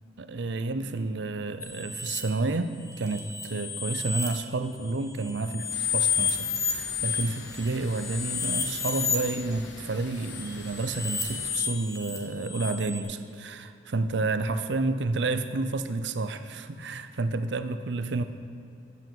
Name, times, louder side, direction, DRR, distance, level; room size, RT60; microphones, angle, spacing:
voice 1, 0.2-2.7 3.0-18.2, right 3 dB, 70° right, 11 dB, 0.6 m, -30 dB
sound 1, 1.6-2.2 2.9-4.3 4.8-9.3 10.2-13.0, left 6 dB, 15° left, 1.6 m, -31 dB
sound 2, 5.7-11.5, left 3 dB, 90° left, 1.0 m, -45 dB
9.1 x 8.3 x 7.4 m, 2.4 s
head